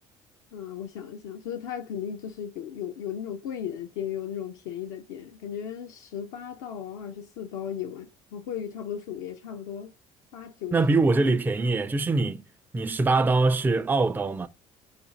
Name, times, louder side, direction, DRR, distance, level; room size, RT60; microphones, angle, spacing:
voice 1, 0.5-9.9 10.3-11.3, left 9 dB, 70° left, 0.5 m, -36 dB
voice 2, 10.7-12.4 12.7-14.5, right 3 dB, 10° right, 0.3 m, -23 dB
2.5 x 2.4 x 3.9 m
hypercardioid pair, 60°, 17 cm